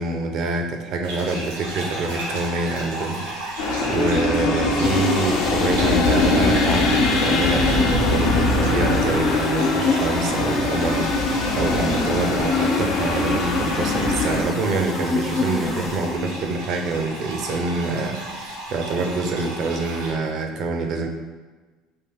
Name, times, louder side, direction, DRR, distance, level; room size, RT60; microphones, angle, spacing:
voice 1, 0.0-21.1, right 3 dB, 55° right, 4 dB, 0.6 m, -26 dB
sound 1, 1.0-20.1, right 1 dB, 80° right, 1.3 m, -34 dB
sound 2, 3.6-14.4, left 2 dB, 70° left, 0.7 m, -22 dB
sound 3, 4.8-16.6, left 4 dB, 35° left, 0.3 m, -28 dB
4.3 x 2.9 x 3.9 m, 1.3 s
hypercardioid pair, 70°, 0 cm